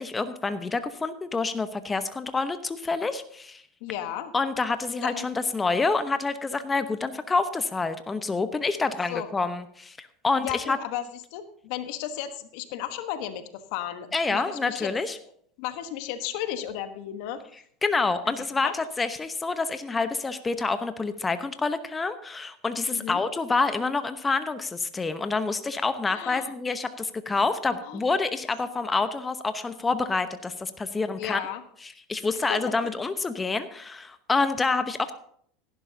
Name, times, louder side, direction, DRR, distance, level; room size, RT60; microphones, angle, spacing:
voice 1, 0.0-3.6 4.3-10.8 14.1-15.2 17.8-31.4 31.8-35.1, left 3 dB, 20° left, 10 dB, 0.9 m, -27 dB
voice 2, 3.8-4.3 5.0-5.3 9.1-9.3 10.4-11.0 11.3-14.9 15.6-17.4 18.2-18.3 18.6-18.7 22.9-23.2 26.1-26.5 27.8-28.0 31.2-31.6 32.5-32.7, left 11 dB, 65° left, 9 dB, 1.2 m, -34 dB
17.0 x 11.0 x 2.8 m, 0.63 s
hypercardioid pair, 90°, 0 cm